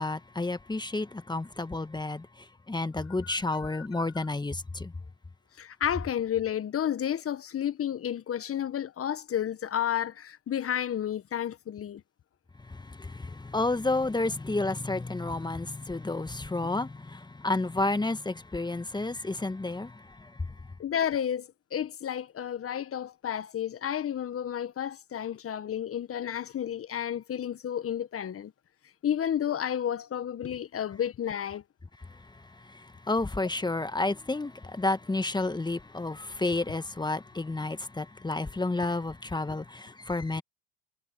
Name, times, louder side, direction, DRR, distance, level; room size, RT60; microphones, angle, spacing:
voice 1, 0.0-4.9 12.6-20.7 32.0-40.4, left 2 dB, 10° left, 1.6 m, -31 dB
voice 2, 3.2-4.0 5.6-12.0 20.8-28.5 29.0-31.6, left 9 dB, 35° left, 1.5 m, -31 dB
hypercardioid pair, 80°, 41 cm